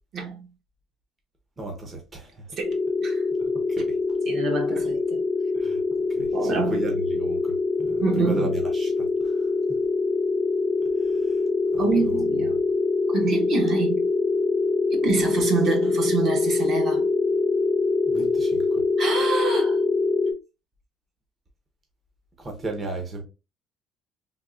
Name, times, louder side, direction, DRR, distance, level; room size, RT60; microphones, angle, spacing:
voice 1, 0.1-0.5 2.6-3.2 4.3-5.2 6.3-6.8 8.0-8.6 11.8-12.6 13.1-14.1 14.9-17.1 19.0-19.8, right 4 dB, 50° right, 0.9 m, -27 dB
voice 2, 1.6-2.4 3.4-3.9 5.5-7.5 7.8-8.5 8.7-9.4 11.0-11.3 11.7-12.2 18.1-18.8 22.4-23.2, right 2 dB, 25° right, 0.7 m, -35 dB
sound 1, 2.6-20.3, left 3 dB, 10° left, 0.7 m, -24 dB
3.5 x 2.3 x 2.4 m
cardioid pair, 135°, 0 cm